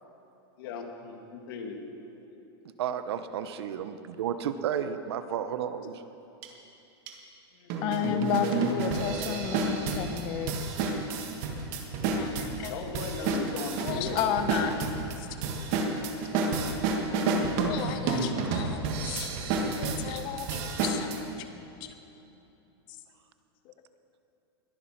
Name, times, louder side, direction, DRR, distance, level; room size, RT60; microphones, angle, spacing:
voice 1, 0.6-1.8 2.3-2.4 7.5-8.8 12.7-14.2 16.1-16.5, left 5 dB, 55° left, 3 dB, 2.2 m, -38 dB
voice 2, 2.8-6.1, right 8 dB, 70° right, 11 dB, 0.9 m, -32 dB
sound 1, 6.4-6.5 7.1-7.2 7.7-21.2, right 4 dB, 40° right, 1.7 m, -30 dB
voice 3, 7.8-10.5 12.1-12.8 13.8-14.7 15.2-15.3 16.3-16.7 17.5-19.3 19.6-21.1 21.8-21.9 22.9-23.0 23.6-23.7, left 8 dB, 35° left, 8 dB, 1.1 m, -33 dB
21.0 x 9.7 x 5.9 m, 2.9 s
supercardioid pair, 165°, 14 cm